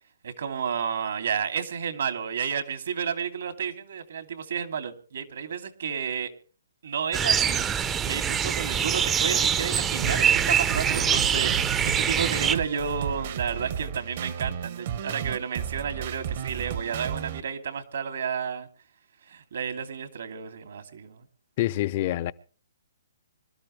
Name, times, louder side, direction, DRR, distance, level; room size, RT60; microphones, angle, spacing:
voice 1, 0.2-6.3 6.8-18.7 19.3-21.2, right 7 dB, 70° right, 2.7 m, -31 dB
sound 1, 7.1-12.6, right 8 dB, 15° right, 0.7 m, -24 dB
sound 2, 10.0-17.4, right 8 dB, 50° right, 1.3 m, -33 dB
voice 2, 21.6-22.3, left 15 dB, 40° left, 0.7 m, -26 dB
25.5 x 13.0 x 3.2 m
hypercardioid pair, 150°, 0 cm